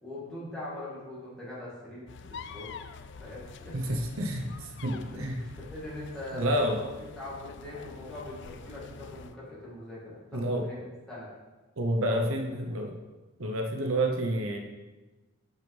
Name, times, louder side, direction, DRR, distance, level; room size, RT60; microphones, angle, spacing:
voice 1, 0.0-2.7 3.2-4.1 4.9-10.8 11.1-11.3 12.0-12.2, left 1 dB, 5° left, -9 dB, 2.2 m, -42 dB
sound 1, 2.1-9.4, left 5 dB, 55° left, 0.4 m, -46 dB
voice 2, 3.7-5.4 6.3-6.8 10.3-10.7 11.8-13.0 13.4-14.6, right 1 dB, 75° right, 3 dB, 0.9 m, -29 dB
5.7 x 5.4 x 6.0 m, 1.2 s
head